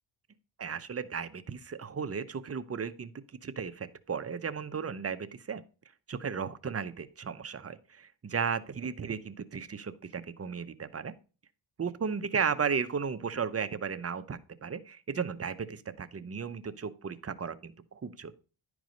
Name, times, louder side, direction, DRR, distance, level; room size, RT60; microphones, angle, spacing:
voice 1, 0.6-3.1 3.4-5.6 6.1-11.1 11.8-18.3, right 6 dB, 30° right, 11 dB, 0.8 m, -35 dB
10.5 x 4.8 x 5.2 m, 0.34 s
cardioid pair, 85°, 45 cm